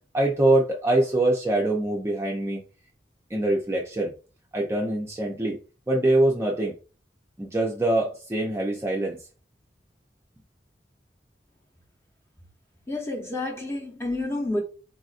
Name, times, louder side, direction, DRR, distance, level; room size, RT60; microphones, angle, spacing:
voice 1, 0.1-2.6 3.3-4.1 4.5-5.6 5.9-6.7 7.4-9.2, right 1 dB, 15° right, 0.4 m, -24 dB
voice 2, 12.9-14.6, left 2 dB, 15° left, 0.8 m, -29 dB
4.0 x 2.5 x 2.4 m
head